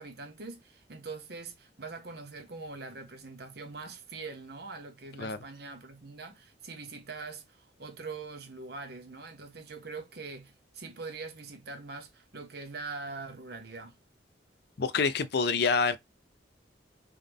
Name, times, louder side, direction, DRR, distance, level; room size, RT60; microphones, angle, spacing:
voice 1, 0.0-14.0, right 4 dB, 60° right, 1.1 m, -43 dB
voice 2, 14.8-16.0, left 5 dB, 60° left, 0.5 m, -26 dB
3.7 x 3.3 x 3.6 m
head